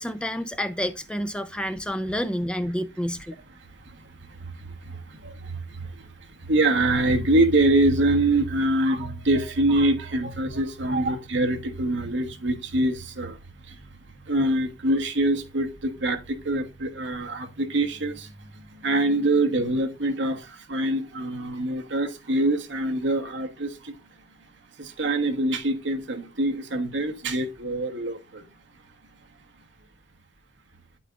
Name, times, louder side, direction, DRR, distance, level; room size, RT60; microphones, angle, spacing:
voice 1, 0.0-3.4, equal, 5° left, 0.5 m, -29 dB
voice 2, 4.9-5.9 6.5-13.4 14.3-18.3 18.8-23.9 24.8-28.4, right 1 dB, 65° right, 1.3 m, -24 dB
9.9 x 8.4 x 2.5 m
head